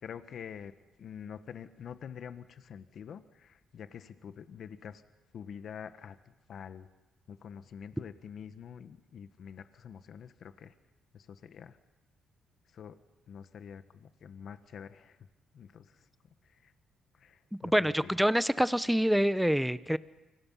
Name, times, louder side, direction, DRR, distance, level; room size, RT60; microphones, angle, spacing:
voice 1, 0.0-0.7 1.0-5.0 5.3-6.2 6.5-6.9 7.3-10.7 11.1-11.8 12.7-13.0 13.3-15.2 15.5-15.9 16.6-16.7 17.2-18.1, left 7 dB, 60° left, 11 dB, 1.4 m, -46 dB
voice 2, 17.6-20.0, equal, ahead, 15 dB, 0.9 m, -26 dB
29.5 x 24.5 x 5.7 m, 1.1 s
cardioid pair, 90°, 0 cm